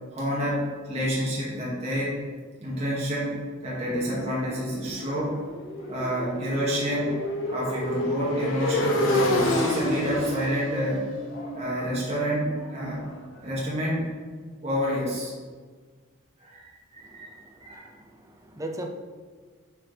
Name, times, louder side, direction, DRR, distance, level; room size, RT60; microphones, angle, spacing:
voice 1, 0.1-2.1 2.6-5.4 5.9-7.2 7.5-11.1 11.5-13.0 13.4-14.1 14.6-15.3 16.4-16.7 16.9-17.9, equal, 35° right, -7 dB, 2.1 m, -29 dB
Motorcycle, 3.7-13.5, left 1 dB, 70° left, 1.2 m, -29 dB
voice 2, 17.0-18.9, right 1 dB, 15° right, 3 dB, 0.6 m, -39 dB
8.9 x 4.7 x 3.4 m, 1.6 s
head